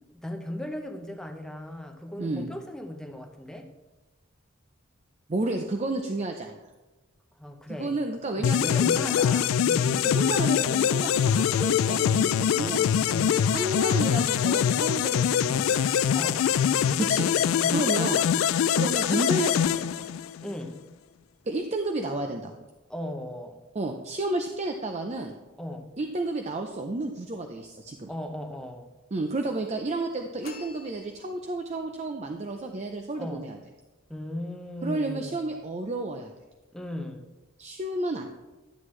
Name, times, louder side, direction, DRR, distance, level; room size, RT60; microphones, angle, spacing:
voice 1, 0.1-3.7 7.4-8.0 8.3-10.1 13.1-13.4 16.1-16.5 17.5-17.8 20.4-20.8 22.9-23.6 25.6-25.9 28.1-28.9 33.2-33.5 34.1-35.5 36.7-37.3, left 1 dB, 5° left, 3 dB, 0.7 m, -37 dB
voice 2, 2.2-2.5 5.3-6.6 7.7-8.9 9.2-9.3 10.0-12.9 13.5-15.8 17.0-17.3 17.7-18.3 18.7-20.1 21.5-22.5 23.7-25.3 26.0-28.1 29.1-33.6 34.8-36.3 37.6-38.3, right 2 dB, 35° right, 4 dB, 0.5 m, -31 dB
sound 1, 8.4-20.5, left 8 dB, 85° left, 0.3 m, -24 dB
sound 2, 30.4-31.7, left 3 dB, 50° left, 0.7 m, -47 dB
11.0 x 7.9 x 3.2 m, 1.1 s
head